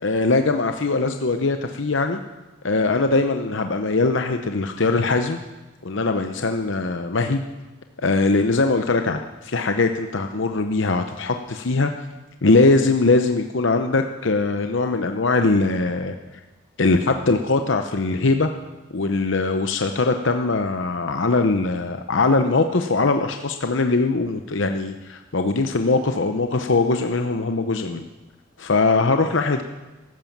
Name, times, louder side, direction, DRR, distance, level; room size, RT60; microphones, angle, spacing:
voice 1, 0.0-2.2 2.6-5.4 5.8-7.4 8.0-11.9 12.4-16.1 16.8-18.5 18.9-28.1 28.6-29.6, left 3 dB, 65° left, 6 dB, 0.8 m, -21 dB
15.0 x 12.5 x 7.4 m, 1.1 s
head